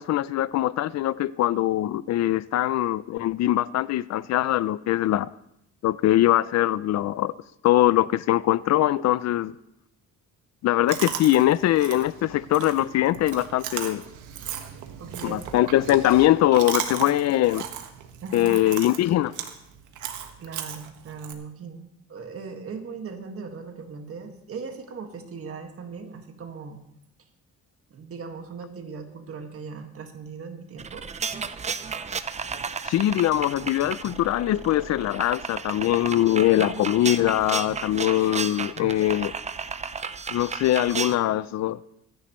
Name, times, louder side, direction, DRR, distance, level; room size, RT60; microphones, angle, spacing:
voice 1, 0.0-5.3 5.8-7.3 7.6-9.5 10.6-14.0 15.2-17.6 18.3-19.3 32.8-39.3 40.3-41.8, left 14 dB, 65° left, 0.5 m, -22 dB
Chewing mastication, 10.9-21.3, right 9 dB, 90° right, 1.4 m, -36 dB
voice 2, 15.0-15.5 18.2-18.6 20.4-26.8 27.9-31.0 36.6-36.8, right 5 dB, 50° right, 1.8 m, -39 dB
sound 1, 30.8-41.2, right 5 dB, 25° right, 0.5 m, -33 dB
25.0 x 10.5 x 3.1 m
cardioid pair, 135°, 29 cm